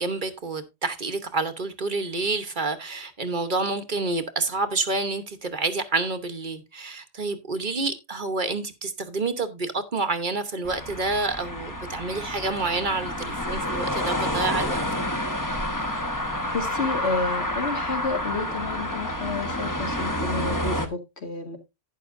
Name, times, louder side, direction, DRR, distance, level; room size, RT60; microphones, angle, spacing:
voice 1, 0.0-14.8, right 3 dB, 40° right, 1.2 m, -28 dB
sound 1, 10.6-20.9, left 1 dB, 15° left, 1.1 m, -29 dB
voice 2, 16.5-21.6, left 3 dB, 55° left, 2.2 m, -30 dB
11.5 x 10.0 x 2.6 m
omnidirectional pair, 1.3 m